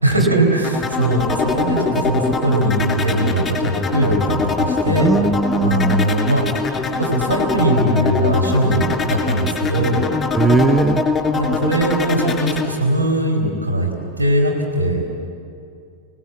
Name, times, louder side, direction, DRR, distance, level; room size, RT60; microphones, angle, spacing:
voice 1, 0.0-5.1 5.6-6.6 6.9-10.0 11.3-13.9 14.2-15.1, right 1 dB, 80° right, 0 dB, 4.6 m, -20 dB
sound 1, 0.6-12.7, left 4 dB, 15° left, 2.9 m, -22 dB
voice 2, 5.0-6.1 10.3-11.0, right 4 dB, 5° right, 10 dB, 0.8 m, -18 dB
26.5 x 18.5 x 8.5 m, 2.5 s
figure-of-eight pair, 90°, 0 cm